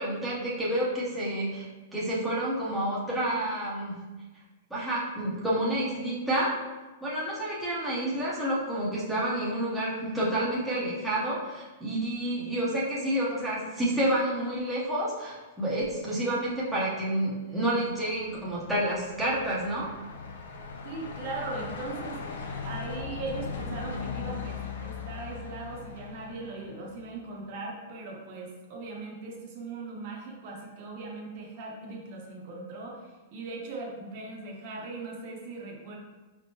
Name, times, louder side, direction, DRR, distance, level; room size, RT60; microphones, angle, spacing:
voice 1, 0.0-1.7 1.9-4.0 4.7-6.5 7.0-19.9, right 1 dB, ahead, -9 dB, 0.7 m, -29 dB
Truck, 17.8-27.2, left 5 dB, 70° left, 0.5 m, -39 dB
voice 2, 20.8-36.0, right 3 dB, 35° right, -1 dB, 0.7 m, -39 dB
5.0 x 3.5 x 2.7 m, 1.2 s
supercardioid pair, 175°, 0 cm